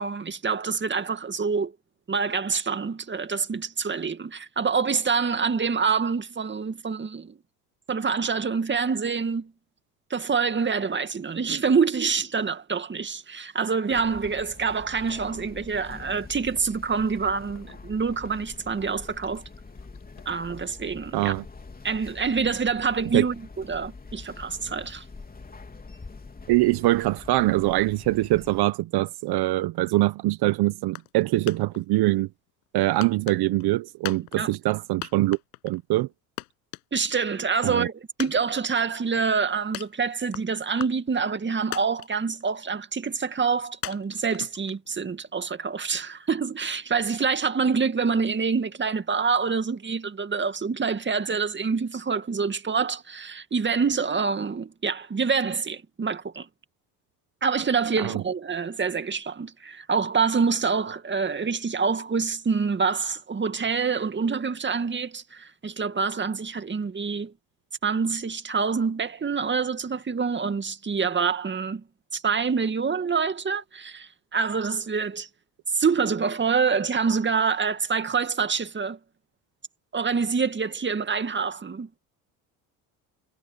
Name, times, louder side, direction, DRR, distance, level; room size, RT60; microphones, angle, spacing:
voice 1, 0.0-1.7 2.1-7.4 7.9-9.5 10.1-19.4 20.3-21.3 21.8-25.0 34.4-34.5 36.9-56.5 57.4-67.3 67.8-71.8 72.1-75.3 75.7-79.0 79.9-82.0, right 5 dB, 25° right, 2.3 m, -26 dB
sound 1, 13.9-28.6, left 4 dB, 20° left, 3.6 m, -44 dB
sound 2, 15.3-15.4 15.9-16.1 16.6-16.7 17.5-17.8 18.1-18.8 19.2-20.4, left 19 dB, 70° left, 7.1 m, -52 dB
voice 2, 21.1-21.4 23.1-23.2 26.5-32.3 32.7-35.4 35.6-36.1 37.6-37.9 58.0-58.2, right 18 dB, 60° right, 1.4 m, -23 dB
sound 3, 30.9-31.2 31.5-32.2 33.0-33.7 34.0-34.7 35.0-35.8 36.1-36.2 36.4-37.3 37.6-37.7 38.2-39.0 39.7-40.4 40.8-41.4 41.7-42.4 42.8-42.9 43.8-45.1, left 20 dB, 85° left, 7.3 m, -37 dB
hypercardioid pair, 70°, 43 cm